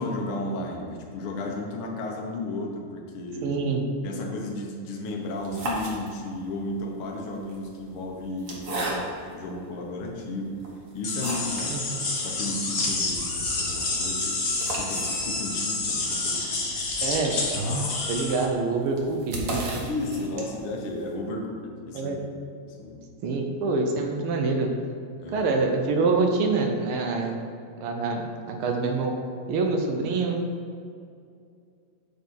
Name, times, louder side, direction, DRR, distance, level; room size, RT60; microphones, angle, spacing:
voice 1, 0.0-3.5 4.0-10.6 10.9-14.4 14.8-16.6 19.8-22.2 22.6-23.0 25.2-25.5, left 2 dB, 60° left, 1 dB, 1.6 m, -34 dB
voice 2, 3.4-3.8 11.7-12.0 17.0-17.4 18.1-19.8 21.9-22.2 23.2-24.7 25.3-27.3 27.8-29.2 29.5-30.4, right 3 dB, 75° right, 3 dB, 1.2 m, -26 dB
sound 1, 5.3-6.5 7.3-9.4 10.0-10.1 10.6-11.7 12.1-12.2 12.4-12.5 12.9-20.8, right 1 dB, 55° right, 0.9 m, -36 dB
sound 2, 11.0-18.4, left 3 dB, 80° left, 0.7 m, -28 dB
8.4 x 4.1 x 6.3 m, 2.4 s
omnidirectional pair, 3.3 m